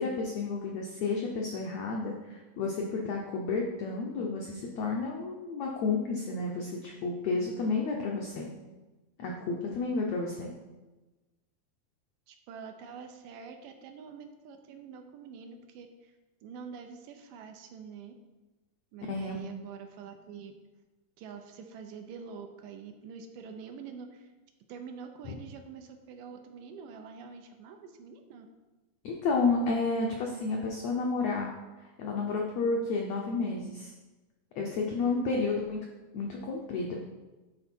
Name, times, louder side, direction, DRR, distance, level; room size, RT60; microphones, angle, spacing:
voice 1, 0.0-8.5 9.2-10.5 19.1-19.4 25.2-25.4 29.0-31.5 32.0-33.9 34.6-35.8 36.1-37.0, left 3 dB, 85° left, 0 dB, 1.5 m, -31 dB
voice 2, 12.3-16.1 16.4-18.1 18.9-20.5 21.2-24.3 24.7-28.5 35.0-35.5, right 6 dB, 80° right, 5 dB, 2.2 m, -46 dB
11.0 x 4.1 x 4.5 m, 1.1 s
omnidirectional pair, 4.1 m